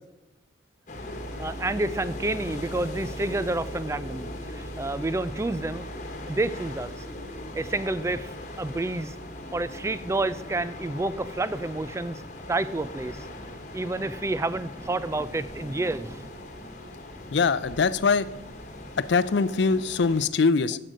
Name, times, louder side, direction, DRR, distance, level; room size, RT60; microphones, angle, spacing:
sound 1, 0.9-20.3, left 2 dB, 40° left, 1.3 m, -40 dB
sound 2, 0.9-19.0, right 2 dB, 45° right, 1.7 m, -45 dB
voice 1, 1.1-6.0 6.3-7.0 7.5-9.2 9.5-12.2 12.5-13.3 13.7-16.2, right 2 dB, 15° right, 15 dB, 0.3 m, -29 dB
voice 2, 17.3-18.3 19.0-20.8, left 4 dB, 60° left, 16 dB, 0.4 m, -22 dB
10.5 x 7.8 x 5.1 m, 0.97 s
head